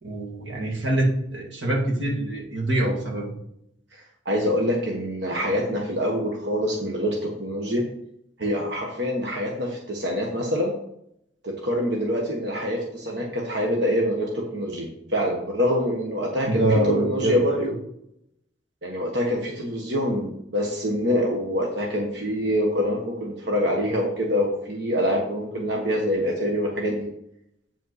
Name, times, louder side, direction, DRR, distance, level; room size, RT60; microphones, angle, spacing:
voice 1, 0.0-3.3 16.5-17.7, right 1 dB, 80° right, -2 dB, 2.2 m, -24 dB
voice 2, 3.9-7.8 8.4-10.7 11.4-17.6 18.8-27.1, equal, 65° right, 0 dB, 1.4 m, -25 dB
8.6 x 5.4 x 4.1 m, 0.74 s
head